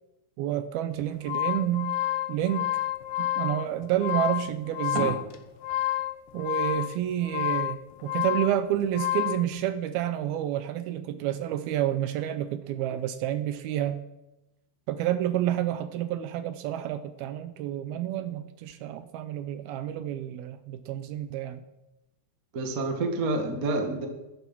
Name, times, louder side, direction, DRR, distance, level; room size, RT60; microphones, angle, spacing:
voice 1, 0.4-2.0 2.3-2.7 3.2-5.2 6.3-14.0 14.9-21.6, right 11 dB, 80° right, 11 dB, 2.4 m, -29 dB
sound 1, 1.0-9.5, left 14 dB, 90° left, 3.2 m, -30 dB
voice 2, 22.5-24.1, right 2 dB, 50° right, 4 dB, 1.0 m, -28 dB
12.0 x 10.5 x 5.9 m, 0.97 s
omnidirectional pair, 4.7 m